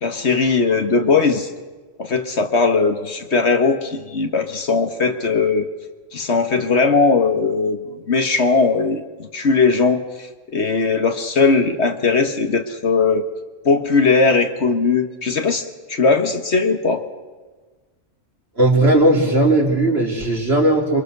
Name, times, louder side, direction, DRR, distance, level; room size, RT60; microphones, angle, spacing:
voice 1, 0.0-1.5 2.0-5.7 6.1-10.3 10.5-13.2 13.6-17.0, left 4 dB, 55° left, 6 dB, 1.7 m, -19 dB
voice 2, 18.6-21.0, right 1 dB, 50° right, 0 dB, 4.1 m, -16 dB
28.5 x 24.5 x 6.8 m, 1.4 s
omnidirectional pair, 1.3 m